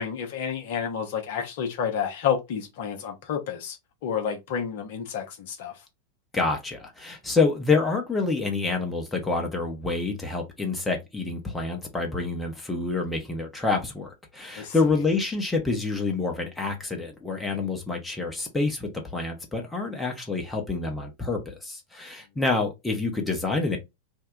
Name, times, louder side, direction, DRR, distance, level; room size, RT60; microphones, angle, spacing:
voice 1, 0.0-3.8 4.0-5.7 14.6-14.7, left 7 dB, 50° left, 0.7 m, -30 dB
voice 2, 6.3-23.8, left 3 dB, 10° left, 0.8 m, -27 dB
2.7 x 2.1 x 3.5 m
figure-of-eight pair, 90°, 0 cm